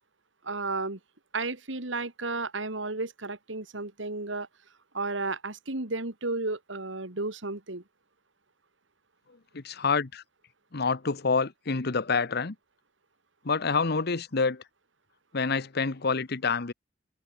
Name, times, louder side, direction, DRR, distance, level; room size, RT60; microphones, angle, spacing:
voice 1, 0.4-1.0 1.3-4.5 4.9-7.8, right 3 dB, 80° right, 2.6 m, -33 dB
voice 2, 9.5-10.2 10.7-12.5 13.4-14.6 15.3-16.7, left 4 dB, 60° left, 1.1 m, -27 dB
head